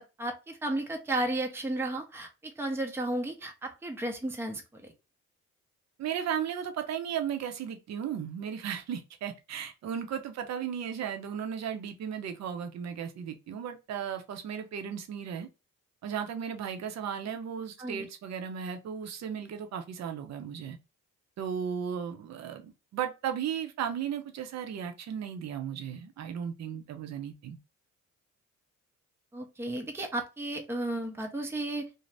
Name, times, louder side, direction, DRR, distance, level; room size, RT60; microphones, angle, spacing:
voice 1, 0.0-4.9 17.8-18.1 29.3-31.9, right 1 dB, 10° right, 0.5 m, -33 dB
voice 2, 6.0-15.5 16.0-20.8 21.4-27.6, right 8 dB, 60° right, 0.7 m, -35 dB
2.6 x 2.0 x 3.2 m
cardioid pair, 90°, 30 cm